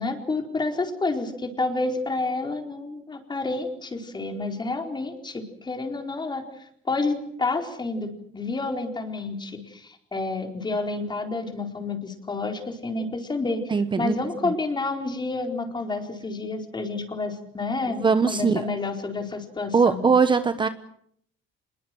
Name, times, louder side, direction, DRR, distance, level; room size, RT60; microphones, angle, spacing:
voice 1, 0.0-20.0, left 3 dB, 20° left, 5 dB, 4.3 m, -29 dB
voice 2, 13.7-14.2 14.4-14.5 17.9-18.7 19.7-20.7, right 5 dB, 25° right, 11 dB, 1.1 m, -21 dB
26.5 x 21.5 x 7.8 m, 0.68 s
cardioid pair, 135°, 21 cm